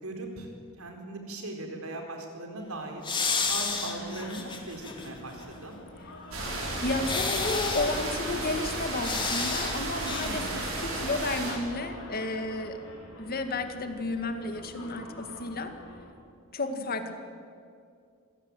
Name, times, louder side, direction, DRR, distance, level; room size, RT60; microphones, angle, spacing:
voice 1, 0.0-0.5 0.8-3.0 3.5-5.8 10.0-10.5 11.0-11.1 16.6-16.8, right 2 dB, 85° right, 2 dB, 4.5 m, -39 dB
sound 1, 3.0-5.1 5.4-5.5 7.0-8.1 9.0-9.7 10.0-10.3, left 4 dB, 25° left, 2.6 m, -30 dB
sound 2, 3.2-16.0, left 1 dB, 80° left, 6.1 m, -47 dB
sound 3, 6.3-11.5, right 2 dB, 70° right, 7.0 m, -33 dB
voice 2, 6.8-12.8 13.2-15.7 16.5-17.1, left 2 dB, 45° left, 7 dB, 2.0 m, -32 dB
26.0 x 17.5 x 9.1 m, 2.3 s
head